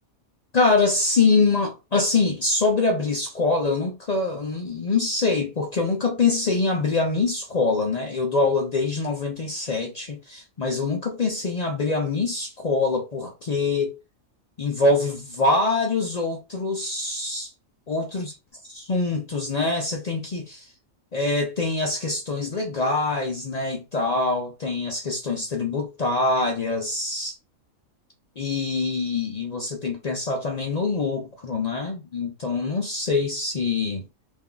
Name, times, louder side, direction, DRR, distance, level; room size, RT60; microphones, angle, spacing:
voice 1, 0.5-14.0 14.6-17.5 17.9-18.2 18.7-20.6 21.1-27.3 28.4-34.0, left 3 dB, 70° left, 0.4 m, -24 dB
2.7 x 2.2 x 3.7 m
omnidirectional pair, 1.4 m